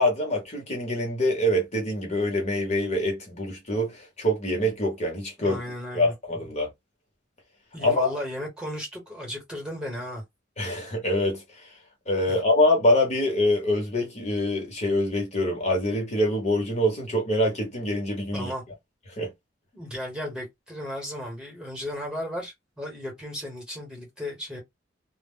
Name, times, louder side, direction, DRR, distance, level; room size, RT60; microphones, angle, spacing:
voice 1, 0.0-5.6 5.9-6.7 7.8-8.1 10.6-11.4 12.1-18.5 19.2-19.3, left 1 dB, 35° left, 0.9 m, -25 dB
voice 2, 5.4-6.1 7.7-10.2 12.3-12.4 18.3-18.6 19.7-24.6, equal, 5° right, 1.0 m, -35 dB
2.1 x 2.1 x 3.5 m
head